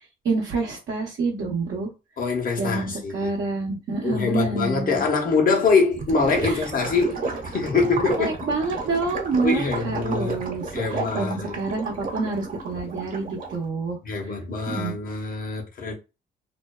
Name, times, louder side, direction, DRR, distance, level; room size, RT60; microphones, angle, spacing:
voice 1, 0.2-1.9 2.6-5.0 6.4-6.7 8.2-14.0 14.7-14.9, right 3 dB, 60° right, 0.9 m, -27 dB
voice 2, 2.2-3.3 4.0-7.2 7.5-8.3 9.4-10.4 10.7-11.6 14.0-15.9, left 4 dB, 45° left, 0.9 m, -24 dB
Gurgling / Liquid, 5.9-13.6, right 3 dB, 45° right, 1.1 m, -32 dB
2.5 x 2.2 x 2.2 m
cardioid pair, 90°, 20 cm